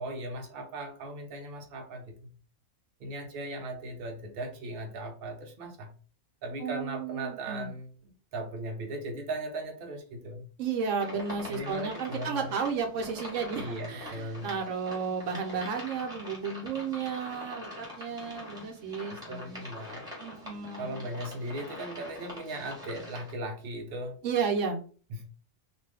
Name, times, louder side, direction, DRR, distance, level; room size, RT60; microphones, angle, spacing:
voice 1, 0.0-2.3 3.0-5.9 6.4-10.5 11.5-12.5 13.6-14.5 19.1-20.0 20.8-24.2 25.1-25.3, right 1 dB, 55° right, 3 dB, 0.8 m, -38 dB
voice 2, 6.6-7.7 10.6-19.6 20.2-21.1 24.2-24.8, right 6 dB, 80° right, 4 dB, 1.0 m, -33 dB
sound 1, 11.0-23.3, left 1 dB, 5° right, 1.3 m, -44 dB
2.5 x 2.5 x 3.3 m, 0.39 s
omnidirectional pair, 1.3 m